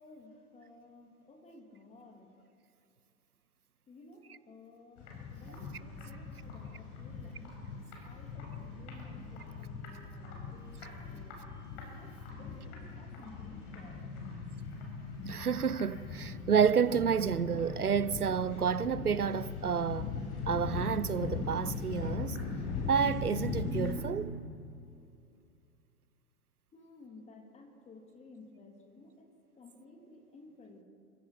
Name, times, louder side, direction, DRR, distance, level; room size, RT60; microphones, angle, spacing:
voice 1, 0.0-2.3 3.9-7.6 8.0-11.4 11.9-14.1 26.7-29.3 29.6-30.8, left 3 dB, 15° left, 2.8 m, -55 dB
sound 1, 5.0-23.9, left 4 dB, 40° left, 5.7 m, -40 dB
voice 2, 15.3-20.1 20.5-22.4 22.9-24.4, right 7 dB, 85° right, 0.7 m, -30 dB
28.5 x 16.0 x 5.9 m
figure-of-eight pair, 105°, 44 cm